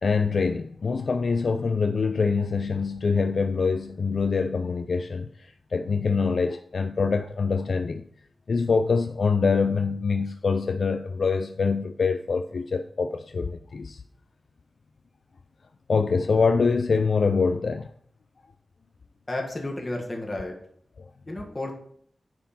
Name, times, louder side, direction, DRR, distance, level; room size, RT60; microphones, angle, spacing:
voice 1, 0.0-8.0 8.5-14.0 15.9-17.9 21.0-21.1, left 4 dB, 60° left, 0.3 m, -25 dB
voice 2, 19.3-20.5 21.3-21.7, left 1 dB, 25° left, 1.5 m, -32 dB
9.3 x 4.3 x 4.2 m
wide cardioid pair, 120°, 0 cm